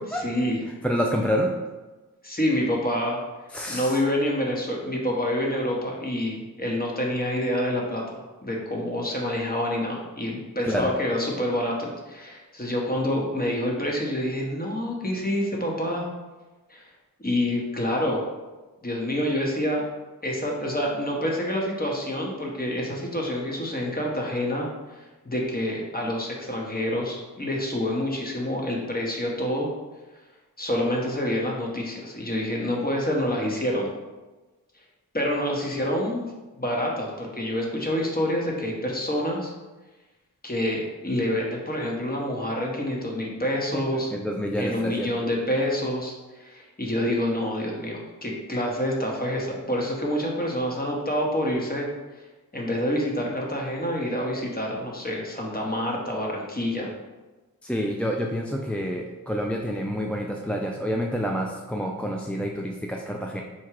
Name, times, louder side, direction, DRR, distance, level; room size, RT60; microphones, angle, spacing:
voice 1, 0.2-0.7 2.2-3.2 3.7-16.1 16.7-16.9 17.2-18.2 18.8-19.8 20.2-25.0 25.2-29.7 30.6-33.9 35.1-36.3 36.6-39.5 40.4-44.1 44.6-51.9 52.5-56.9, left 1 dB, 25° left, -2 dB, 1.2 m, -27 dB
voice 2, 0.8-1.5 3.5-4.0 10.6-10.9 43.7-43.8 44.1-45.1 57.6-63.4, equal, 5° left, 0 dB, 0.4 m, -28 dB
4.4 x 2.3 x 4.7 m, 1.2 s
cardioid pair, 40°, 37 cm